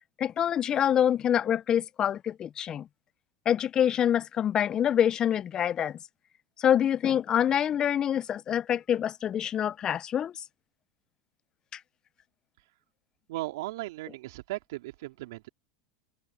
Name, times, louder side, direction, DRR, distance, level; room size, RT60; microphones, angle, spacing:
voice 1, 0.2-2.9 3.5-6.0 6.6-10.3, left 9 dB, 35° left, 0.5 m, -26 dB
voice 2, 13.3-15.5, right 18 dB, 75° right, 3.1 m, -37 dB
open air
hypercardioid pair, 105°, 2 cm